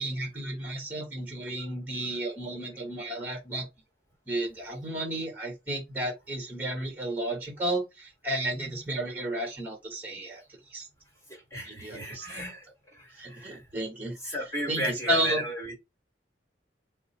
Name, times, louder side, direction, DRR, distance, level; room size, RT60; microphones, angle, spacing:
voice 1, 0.0-3.7 4.3-10.4 10.7-10.9 11.6-12.4 13.1-14.4 14.7-15.4, right 1 dB, 10° right, 1.3 m, -32 dB
voice 2, 11.3-12.6 12.9-13.6 14.2-15.7, equal, 15° left, 1.8 m, -35 dB
4.6 x 2.1 x 4.3 m
head